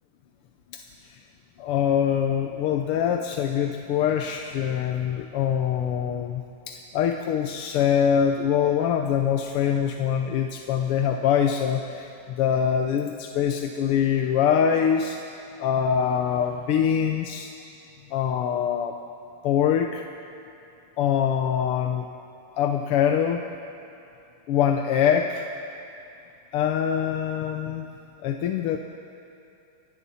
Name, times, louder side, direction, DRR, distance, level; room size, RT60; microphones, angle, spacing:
voice 1, 1.6-15.2 15.6-17.5 18.1-19.0 19.4-20.1 21.0-22.0 22.6-23.4 24.5-25.5 26.5-27.9 28.2-28.8, left 8 dB, 90° left, 4 dB, 1.8 m, -24 dB
29.0 x 22.0 x 4.2 m, 2.7 s
omnidirectional pair, 2.4 m